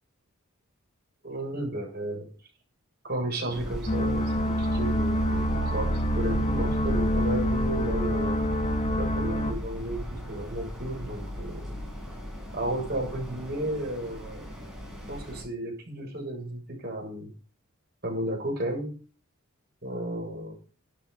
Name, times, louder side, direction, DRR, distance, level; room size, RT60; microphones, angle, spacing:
voice 1, 1.2-2.3 3.1-8.4 8.9-11.6 12.5-14.5 15.1-17.3 18.0-18.9 19.8-20.5, right 1 dB, 45° right, 0 dB, 7.1 m, -33 dB
sound 1, 3.5-15.4, equal, ahead, 6.4 m, -35 dB
sound 2, 3.9-9.5, equal, 30° left, 1.7 m, -27 dB
12.5 x 9.0 x 5.7 m, 0.36 s
head